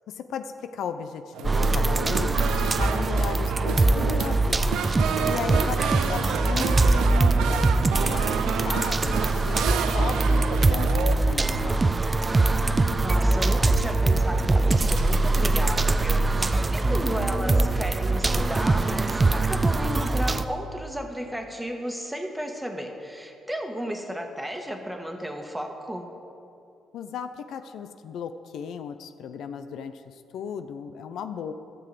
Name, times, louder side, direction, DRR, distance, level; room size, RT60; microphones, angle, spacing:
voice 1, 0.1-4.6 5.3-5.8 6.1-7.7 8.0-12.2 26.9-31.5, left 7 dB, 75° left, 9 dB, 0.6 m, -36 dB
sound 1, 1.3-11.1, right 8 dB, 85° right, 0.6 m, -31 dB
sound 2, 1.4-20.4, right 2 dB, 25° right, 0.5 m, -22 dB
voice 2, 5.5-6.2 13.0-26.1, equal, 5° right, 3 dB, 1.5 m, -33 dB
sound 3, 14.7-16.1, right 5 dB, 55° right, 1.6 m, -42 dB
13.0 x 7.0 x 7.7 m, 2.6 s
cardioid pair, 90°, 0 cm